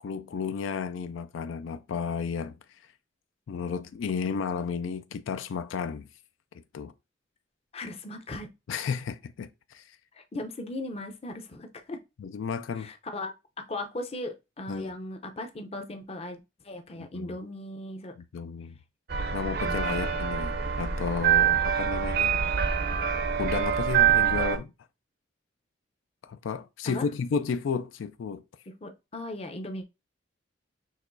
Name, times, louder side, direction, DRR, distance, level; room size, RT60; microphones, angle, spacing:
voice 1, 0.0-2.8 3.5-6.1 6.7-6.9 8.7-10.0 12.2-12.9 14.7-14.9 16.9-17.3 18.2-18.7 19.3-22.3 23.4-24.7 26.2-28.4, left 6 dB, 80° left, 0.3 m, -33 dB
voice 2, 7.7-8.5 10.2-12.0 12.8-16.4 16.6-18.1 19.6-20.1 26.9-27.1 28.8-29.8, left 1 dB, 30° left, 0.6 m, -38 dB
sound 1, 19.1-24.6, right 8 dB, 50° right, 0.5 m, -25 dB
6.4 x 3.0 x 2.6 m
head